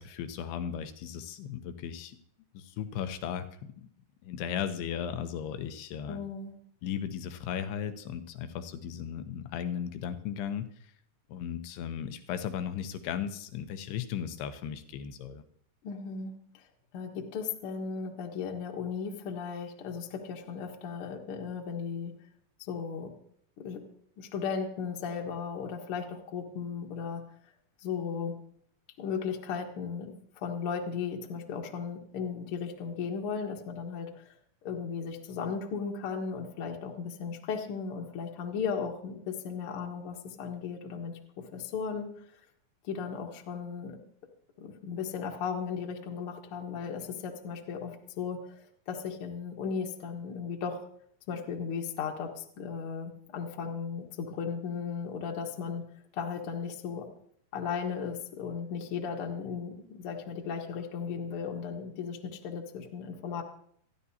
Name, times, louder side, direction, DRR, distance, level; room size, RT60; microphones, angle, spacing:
voice 1, 0.0-2.2 2.5-3.9 4.2-6.2 6.8-10.7 11.3-15.4, left 8 dB, 85° left, 9 dB, 2.9 m, -36 dB
voice 2, 6.1-6.5 15.8-16.6 16.9-22.1 22.7-23.1 23.6-23.8 24.2-27.2 27.8-28.3 29.0-34.3 34.6-41.1 41.5-42.1 42.8-44.0 44.6-50.8 51.3-55.8 56.1-57.1 57.5-63.4, left 6 dB, 55° left, 1 dB, 1.5 m, -36 dB
27.5 x 11.0 x 2.8 m, 0.65 s
omnidirectional pair, 4.6 m